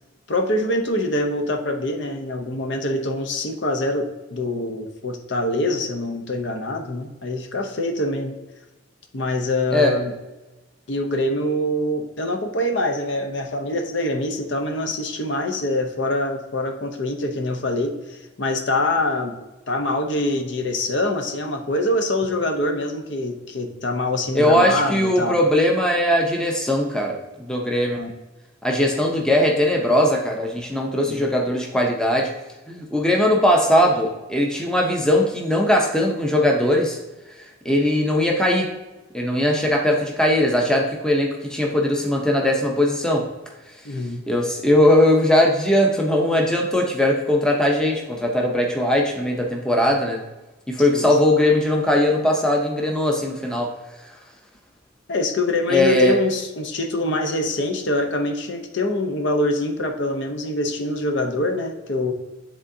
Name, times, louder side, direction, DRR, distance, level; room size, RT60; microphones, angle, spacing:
voice 1, 0.3-8.4 9.1-10.1 10.9-19.4 19.7-25.4 28.0-28.1 31.0-31.2 43.8-44.2 50.9-51.1 55.1-62.1, left 1 dB, 60° left, 4 dB, 0.7 m, -24 dB
voice 2, 24.3-28.0 28.6-32.3 32.7-37.0 37.4-38.7 39.1-43.3 44.3-50.2 50.7-53.7 55.7-56.2, left 1 dB, 5° left, 0 dB, 0.6 m, -19 dB
10.0 x 3.6 x 2.7 m, 1.1 s
head